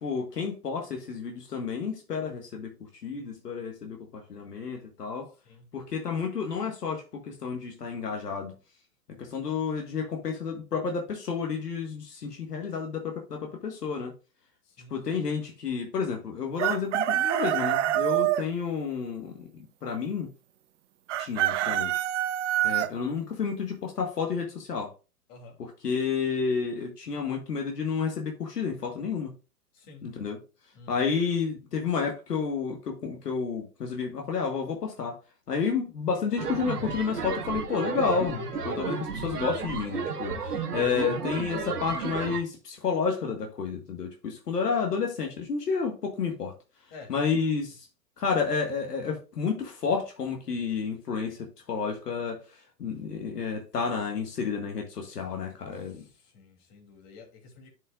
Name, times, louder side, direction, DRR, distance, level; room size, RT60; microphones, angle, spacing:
voice 1, 0.0-2.7 3.0-5.3 5.7-8.5 9.2-14.1 14.9-19.5 19.8-20.3 21.2-21.9 22.6-24.9 25.6-29.3 30.0-30.4 30.9-35.2 35.5-46.5 47.1-47.9 48.2-52.4 52.8-56.0, left 5 dB, 80° left, 1.7 m, -30 dB
voice 2, 14.6-15.2 25.3-25.6 29.7-30.1 30.7-31.0 46.9-47.1 55.7-57.7, left 3 dB, 40° left, 3.0 m, -51 dB
Chicken rooster, 16.6-18.4 21.1-22.9, right 13 dB, 50° right, 0.7 m, -26 dB
sound 1, 36.4-42.4, right 5 dB, 75° right, 1.6 m, -33 dB
11.0 x 5.5 x 2.4 m
hypercardioid pair, 120°, 47 cm